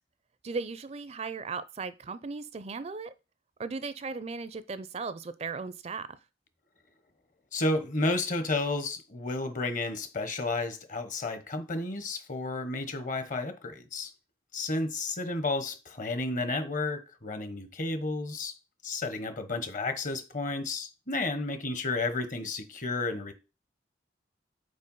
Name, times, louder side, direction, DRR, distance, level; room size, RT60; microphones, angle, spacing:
voice 1, 0.4-3.1 3.6-6.2, right 4 dB, 35° right, 0.4 m, -37 dB
voice 2, 7.5-14.1 14.5-18.5 18.8-23.3, left 2 dB, 45° left, 1.0 m, -32 dB
5.3 x 4.4 x 5.4 m
head